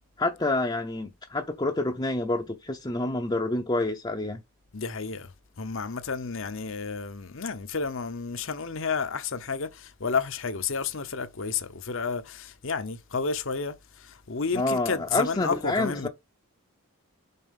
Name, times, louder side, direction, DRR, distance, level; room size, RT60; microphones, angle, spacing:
voice 1, 0.2-4.4 14.5-16.1, left 2 dB, 20° left, 0.6 m, -28 dB
voice 2, 4.7-16.1, left 5 dB, 60° left, 0.8 m, -31 dB
5.5 x 4.0 x 5.5 m
head